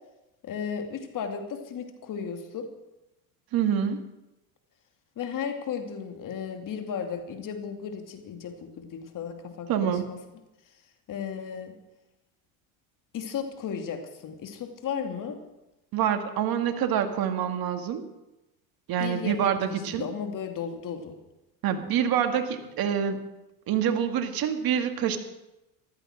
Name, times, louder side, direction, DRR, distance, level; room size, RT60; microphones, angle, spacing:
voice 1, 0.4-2.7 5.2-10.2 11.1-11.7 13.1-15.4 19.0-21.2, left 7 dB, 45° left, 6 dB, 2.6 m, -35 dB
voice 2, 3.5-4.0 9.7-10.0 15.9-18.0 18.9-20.1 21.6-23.2 23.7-25.2, right 9 dB, 50° right, 7 dB, 2.0 m, -26 dB
14.5 x 12.5 x 6.3 m, 0.96 s
supercardioid pair, 95°, 44 cm